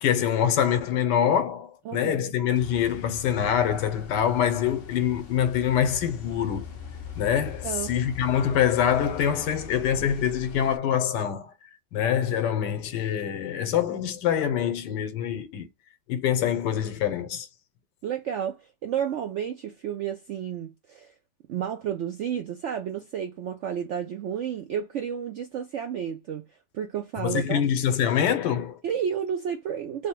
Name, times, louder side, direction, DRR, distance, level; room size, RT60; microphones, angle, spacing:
voice 1, 0.0-6.7 7.2-11.5 11.9-15.7 16.1-17.5 27.2-28.8, left 9 dB, 85° left, 1.3 m, -25 dB
voice 2, 1.9-2.3 7.6-7.9 18.0-21.1 21.5-26.4 26.7-27.6 28.8-30.1, right 8 dB, 75° right, 0.6 m, -31 dB
sound 1, 2.6-10.8, left 3 dB, 60° left, 0.6 m, -41 dB
3.3 x 2.1 x 4.3 m
omnidirectional pair, 1.8 m